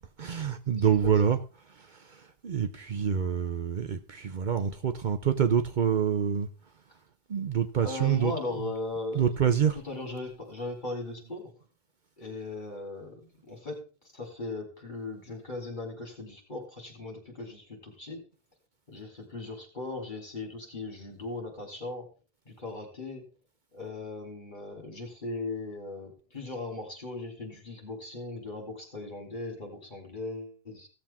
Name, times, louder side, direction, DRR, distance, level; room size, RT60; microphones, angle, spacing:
voice 1, 0.2-1.4 1.8-6.5 7.3-8.3 9.2-9.8, right 8 dB, 55° right, 0.8 m, -26 dB
voice 2, 0.7-1.1 7.8-9.3 9.8-11.5 12.2-13.9 14.1-18.2 18.9-22.1 22.4-23.2 23.7-30.9, left 2 dB, 50° left, 3.3 m, -38 dB
16.5 x 7.3 x 3.5 m
omnidirectional pair, 1.0 m